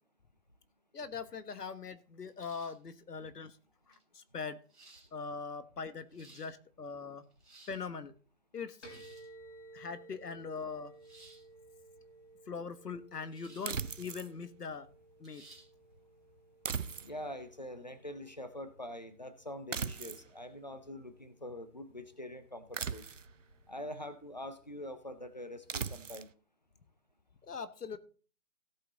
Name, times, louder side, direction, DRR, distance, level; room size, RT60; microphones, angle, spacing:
voice 1, 0.9-3.6 3.9-4.6 5.1-7.2 7.7-8.1 8.5-8.8 9.7-10.9 12.5-14.9 15.2-15.4 27.4-28.0, left 5 dB, 85° left, 13 dB, 1.5 m, -41 dB
sound 1, 2.4-2.9 3.9-4.0 4.7-5.1 5.9-6.5 7.2-7.8 8.8-9.3 11.0-11.4 13.3-13.7 14.1-14.2 15.2-15.7, right 2 dB, ahead, 2.2 m, -58 dB
sound 2, 8.8-26.2, right 2 dB, 50° left, 3.6 m, -59 dB
sound 3, 13.7-14.3 16.7-17.4 19.7-20.3 22.7-23.4 25.7-26.3, right 6 dB, 55° right, 0.6 m, -38 dB
voice 2, 17.0-23.0 23.7-26.3, left 1 dB, 30° left, 11 dB, 0.6 m, -44 dB
17.0 x 5.8 x 3.9 m, 0.39 s
hypercardioid pair, 175°, 46 cm